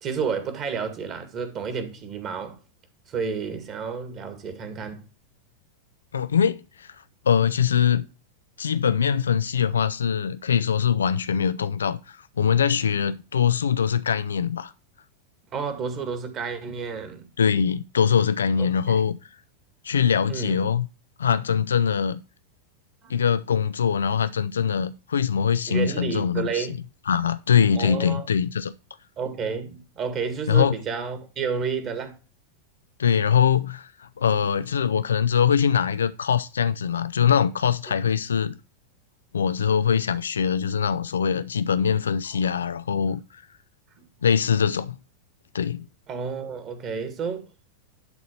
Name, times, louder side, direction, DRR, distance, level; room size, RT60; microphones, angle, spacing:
voice 1, 0.0-2.6 3.1-5.1 15.5-17.3 18.6-18.9 20.3-20.6 23.0-23.2 25.7-26.8 27.7-28.3 29.2-32.2 42.3-42.4 44.0-44.1 46.1-47.5, right 6 dB, 30° right, 2.0 m, -31 dB
voice 2, 6.1-6.9 7.3-8.0 8.6-14.7 17.4-19.2 19.8-20.9 21.2-22.2 23.1-26.7 27.1-28.7 30.5-30.7 33.0-38.6 39.3-43.2 44.2-45.0 45.5-45.9, left 7 dB, 70° left, 0.5 m, -22 dB
11.5 x 4.1 x 6.7 m
figure-of-eight pair, 90°, 0 cm